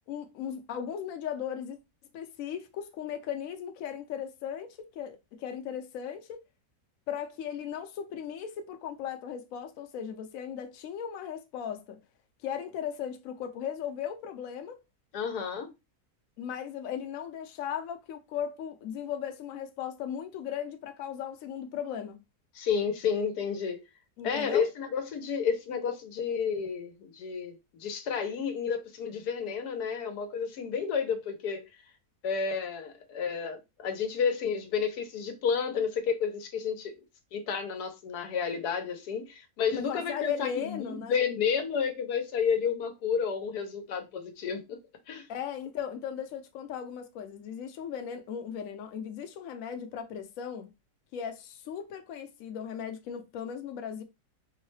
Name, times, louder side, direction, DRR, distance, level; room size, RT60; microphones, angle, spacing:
voice 1, 0.1-1.8 2.1-6.4 7.1-12.0 12.4-14.8 16.4-22.2 24.2-24.7 39.7-41.2 45.3-50.7 51.1-54.0, left 8 dB, 65° left, 0.9 m, -37 dB
voice 2, 15.1-15.7 22.5-23.8 24.2-27.5 27.8-31.7 32.2-37.0 37.3-44.8 45.1-45.3, left 6 dB, 90° left, 1.3 m, -31 dB
4.5 x 2.1 x 3.1 m
omnidirectional pair, 1.7 m